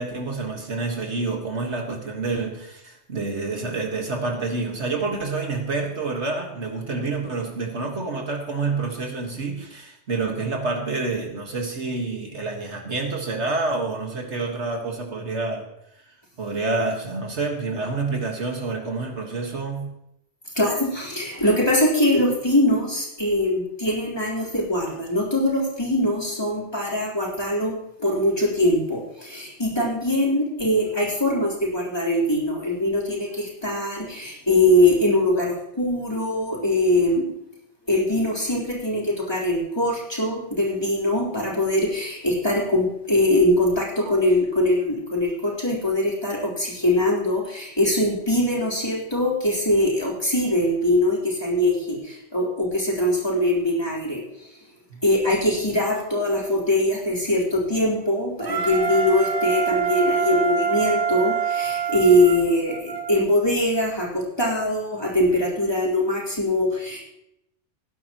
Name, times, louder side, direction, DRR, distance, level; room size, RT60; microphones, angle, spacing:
voice 1, 0.0-15.7 16.4-19.9 44.1-44.2 54.9-55.0, right 3 dB, 65° right, 2 dB, 2.0 m, -28 dB
voice 2, 20.5-37.2 37.9-54.5 55.0-67.0, left 1 dB, 20° left, -5 dB, 4.0 m, -22 dB
Wind instrument woodwind instrument, 58.4-63.2, right 6 dB, 50° right, 1.3 m, -25 dB
18.0 x 11.0 x 3.0 m, 0.81 s
omnidirectional pair, 1.2 m